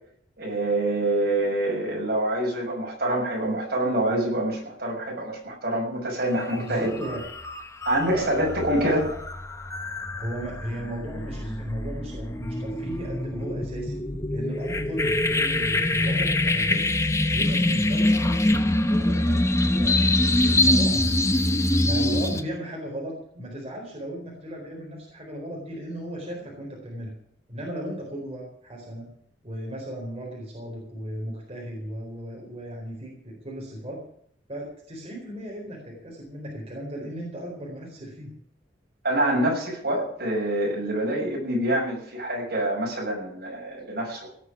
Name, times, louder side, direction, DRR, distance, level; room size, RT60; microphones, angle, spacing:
voice 1, 0.4-6.9 7.8-9.0 39.0-44.3, right 1 dB, 60° right, -2 dB, 6.5 m, -26 dB
sound 1, 6.4-6.6 6.9-22.4, left 1 dB, 15° left, 0.9 m, -24 dB
voice 2, 6.5-7.2 8.1-8.3 8.8-9.0 10.2-13.9 14.3-16.9 17.3-21.1 21.8-27.1 27.5-29.1 29.4-34.0 34.5-38.3, right 1 dB, 35° right, -2 dB, 4.3 m, -36 dB
17.5 x 6.5 x 10.0 m, 0.64 s
head